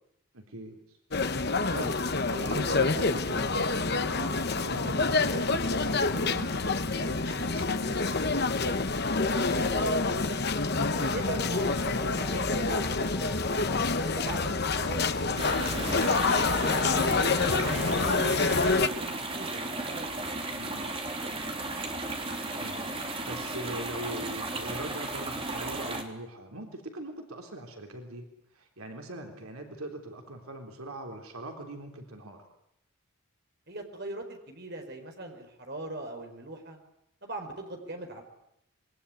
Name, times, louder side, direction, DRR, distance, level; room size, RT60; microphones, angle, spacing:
voice 1, 0.3-1.0 1.4-2.0 2.3-8.1 20.5-20.9 22.5-28.3 28.5-32.4, right 1 dB, 80° right, 3 dB, 3.6 m, -41 dB
sound 1, 1.1-18.9, left 3 dB, 45° left, 1.2 m, -27 dB
voice 2, 9.2-10.4 10.9-13.1 14.0-16.1 16.8-20.1 33.7-36.8 37.2-38.2, right 2 dB, 45° right, 4 dB, 4.6 m, -41 dB
Brass instrument, 11.1-14.6 15.0-18.6, equal, 5° right, 1.8 m, -45 dB
sound 2, 15.4-26.0, right 2 dB, 25° right, 3.3 m, -35 dB
26.0 x 22.0 x 9.9 m, 0.79 s
head